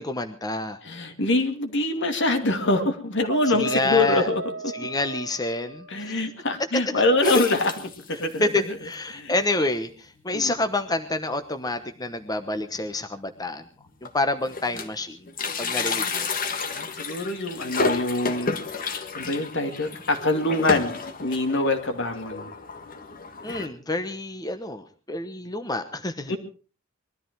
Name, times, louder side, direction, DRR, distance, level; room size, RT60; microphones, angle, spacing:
voice 1, 0.0-0.8 3.4-4.3 4.7-6.2 7.2-7.4 8.1-13.6 14.0-15.3 15.6-16.3 23.4-26.3, left 2 dB, 20° left, 8 dB, 1.0 m, -28 dB
voice 2, 0.8-4.4 5.9-7.7 8.1-8.5 9.1-9.3 10.3-10.5 16.7-22.5 26.3-26.4, left 2 dB, 60° left, 7 dB, 2.4 m, -25 dB
sound 1, 2.7-2.9 3.2-6.0, right 3 dB, 65° right, 1.3 m, -34 dB
sound 2, 7.2-8.4 8.9-9.0 9.2-9.3 10.2-10.3 10.7-10.9 11.2-11.3 12.6-12.7 13.4-13.5 13.8-15.0 15.3-23.7, left 4 dB, 45° left, 1.6 m, -31 dB
21.5 x 13.5 x 4.6 m, 0.37 s
head